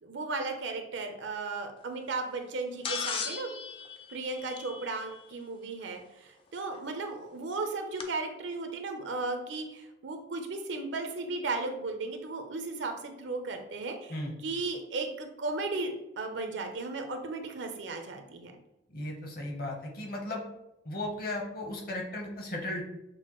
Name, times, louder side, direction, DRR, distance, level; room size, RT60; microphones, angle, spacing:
voice 1, 0.0-3.5 4.1-18.5, right 3 dB, 85° right, 5 dB, 0.6 m, -35 dB
sound 1, 2.8-5.2 6.7-6.8 8.0-8.1, left 6 dB, 30° left, 0.3 m, -36 dB
voice 2, 18.9-20.4 20.8-22.8, left 1 dB, 50° left, 0 dB, 0.9 m, -36 dB
6.2 x 2.2 x 3.0 m, 0.88 s
head